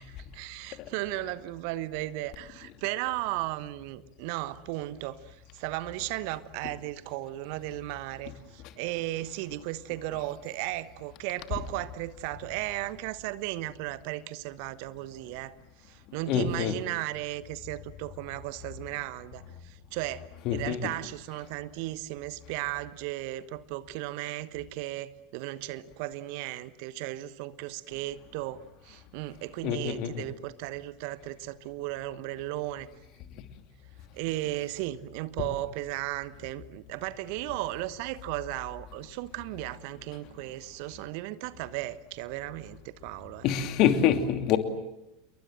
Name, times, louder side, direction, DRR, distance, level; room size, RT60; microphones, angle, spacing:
voice 1, 0.0-15.6 15.8-32.9 34.1-43.4, right 16 dB, 55° right, 15 dB, 1.1 m, -35 dB
voice 2, 16.3-16.8 20.4-20.9 29.6-30.2 35.4-35.5 43.4-44.6, left 9 dB, 45° left, 6 dB, 2.7 m, -26 dB
28.5 x 22.5 x 7.6 m, 0.91 s
figure-of-eight pair, 80°, 0 cm